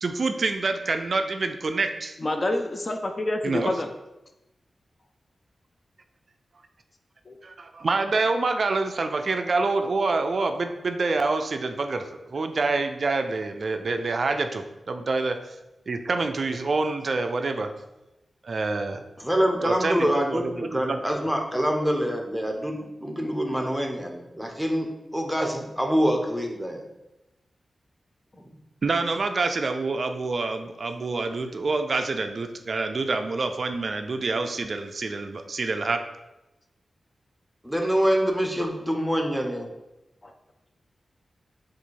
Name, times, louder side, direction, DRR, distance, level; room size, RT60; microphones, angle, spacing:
voice 1, 0.0-2.2 3.4-3.7 7.4-15.4 15.9-17.7 18.4-19.0 19.6-21.0 28.8-36.0, right 3 dB, 55° right, 7 dB, 0.3 m, -27 dB
voice 2, 2.2-3.9 7.3-7.4 40.2-40.3, left 1 dB, 35° left, 5 dB, 0.4 m, -27 dB
voice 3, 19.2-26.8 28.3-28.4 37.6-39.7, equal, ahead, 2 dB, 0.7 m, -25 dB
4.0 x 2.4 x 4.5 m, 0.96 s
wide cardioid pair, 95°, 0 cm